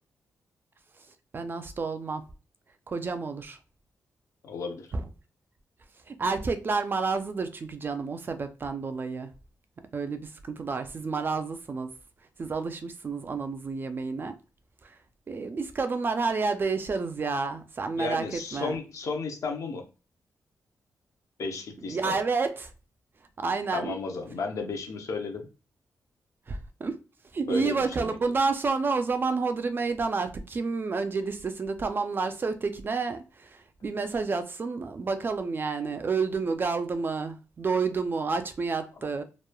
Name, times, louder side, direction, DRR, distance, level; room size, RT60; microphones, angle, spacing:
voice 1, 1.3-2.2 2.9-3.6 4.9-5.1 6.1-9.3 9.9-11.9 12.4-14.4 14.8-15.0 15.3-18.8 21.8-22.7 23.4-24.0 26.5-27.0 27.3-39.2, right 4 dB, 35° right, 0.3 m, -30 dB
voice 2, 4.4-4.9 18.0-19.8 21.4-22.1 23.7-25.5 27.5-28.2, left 3 dB, 60° left, 0.7 m, -33 dB
3.0 x 2.0 x 2.2 m
wide cardioid pair, 115°, 6 cm